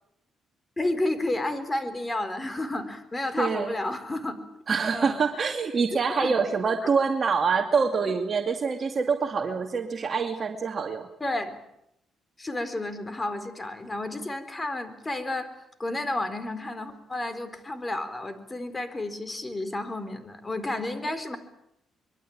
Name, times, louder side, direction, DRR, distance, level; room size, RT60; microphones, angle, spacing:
voice 1, 0.8-4.4 4.7-5.6 5.9-6.4 6.8-6.9 11.2-11.6 12.4-15.5 15.8-21.4, left 2 dB, 20° left, 11 dB, 4.1 m, -31 dB
voice 2, 3.4-3.7 4.7-11.1, right 5 dB, 40° right, 3 dB, 2.4 m, -25 dB
24.5 x 23.0 x 8.8 m, 0.80 s
cardioid pair, 90°, 0 cm